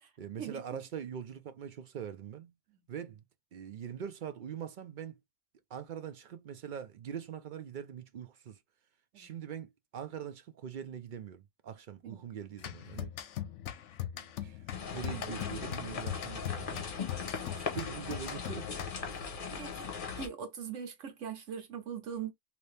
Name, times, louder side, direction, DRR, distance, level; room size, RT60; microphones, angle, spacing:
voice 1, 0.2-2.5 2.9-3.2 3.5-5.2 5.7-8.6 9.2-13.1 14.4-14.6 14.9-16.8 17.5-18.9, right 8 dB, 60° right, 0.5 m, -42 dB
sound 1, 12.6-19.2, left 11 dB, 75° left, 0.9 m, -41 dB
sound 2, 14.7-20.3, left 6 dB, 50° left, 1.0 m, -39 dB
voice 2, 17.1-17.8 19.5-19.9 20.2-22.3, right 7 dB, 90° right, 1.3 m, -42 dB
3.0 x 2.6 x 3.2 m
omnidirectional pair, 1.2 m